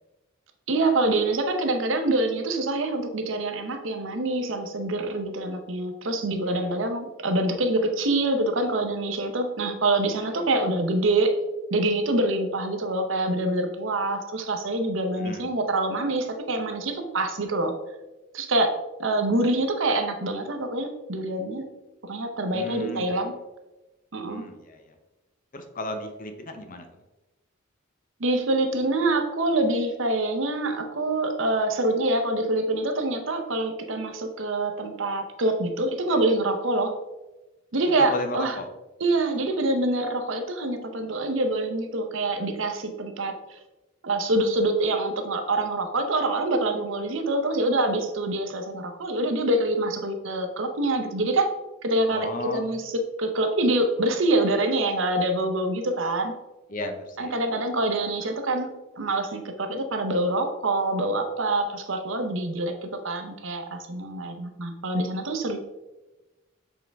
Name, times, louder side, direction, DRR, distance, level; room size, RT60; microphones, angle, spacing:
voice 1, 0.7-11.4 11.7-17.7 18.3-18.7 19.0-21.7 22.0-23.3 24.1-24.4 28.2-36.9 37.7-38.5 39.0-43.6 44.0-51.5 51.8-56.3 57.2-58.7 59.0-65.6, right 2 dB, 65° right, 5 dB, 0.8 m, -25 dB
voice 2, 6.4-6.8 10.3-10.4 15.2-15.5 22.5-23.1 24.3-24.9 25.5-26.9 37.9-38.7 52.1-52.7 56.7-57.4, left 1 dB, 40° left, 6 dB, 0.7 m, -35 dB
7.1 x 3.8 x 3.5 m, 1.1 s
head